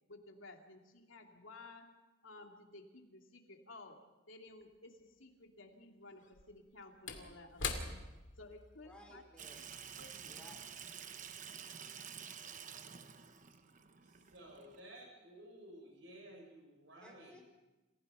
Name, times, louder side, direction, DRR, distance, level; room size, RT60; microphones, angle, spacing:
voice 1, 0.1-1.9 2.2-4.0 4.3-8.0 8.4-9.2 10.0-10.4, left 2 dB, 80° left, 2 dB, 2.7 m, -55 dB
Slam / Wood, 4.6-4.7 6.2-10.9 11.2-11.4, left 5 dB, 65° left, 2.5 m, -45 dB
voice 2, 8.8-9.6 10.3-10.7 17.0-17.4, equal, 5° left, 0 dB, 4.8 m, -58 dB
Water tap faucet / Sink (filling or washing), 9.4-14.8, right 7 dB, 40° right, 1.0 m, -50 dB
voice 3, 14.0-17.4, right 1 dB, 65° right, 1 dB, 7.0 m, -55 dB
28.5 x 16.0 x 5.7 m, 1.1 s
head